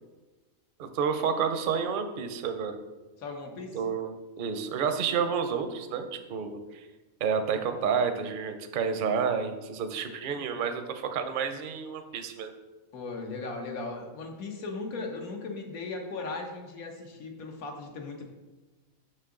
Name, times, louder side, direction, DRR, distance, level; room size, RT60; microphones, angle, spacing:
voice 1, 0.8-2.8 3.7-4.1 4.4-6.8 7.2-12.5, right 6 dB, 55° right, 8 dB, 0.6 m, -30 dB
voice 2, 3.2-3.8 12.9-18.3, left 3 dB, 85° left, 2 dB, 1.5 m, -37 dB
6.6 x 6.0 x 3.7 m, 1.2 s
omnidirectional pair, 1.5 m